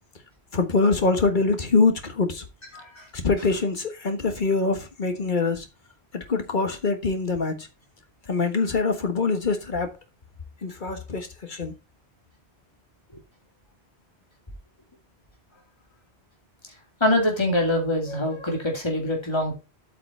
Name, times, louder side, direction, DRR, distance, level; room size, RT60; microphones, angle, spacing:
voice 1, 0.5-2.4 3.2-5.7 6.1-7.7 8.3-9.9 10.6-11.7, left 4 dB, 50° left, 1.5 m, -24 dB
voice 2, 2.7-3.1 17.0-19.5, left 1 dB, 25° left, 2.6 m, -24 dB
8.2 x 5.8 x 4.2 m
omnidirectional pair, 1.1 m